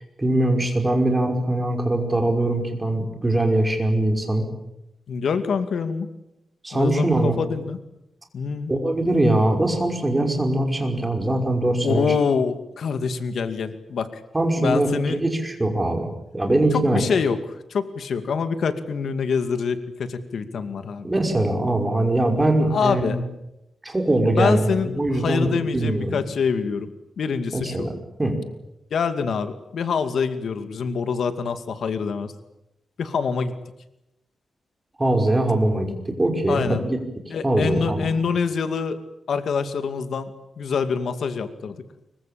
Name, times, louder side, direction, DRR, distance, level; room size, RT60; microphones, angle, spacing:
voice 1, 0.2-4.4 6.6-7.4 8.7-12.1 14.3-17.0 21.0-23.2 23.8-26.2 27.5-27.9 28.2-28.3 35.0-37.0 37.4-38.1, right 1 dB, 15° right, 4 dB, 5.5 m, -22 dB
voice 2, 5.1-6.1 6.7-7.8 8.3-8.7 11.8-14.2 14.6-15.2 16.7-21.1 22.7-23.2 24.2-27.9 28.9-32.3 33.0-33.5 36.5-36.8 37.3-39.0 39.3-40.3 40.6-41.8, left 5 dB, 75° left, 10 dB, 2.3 m, -25 dB
25.5 x 23.5 x 8.8 m, 0.87 s
wide cardioid pair, 130°, 0 cm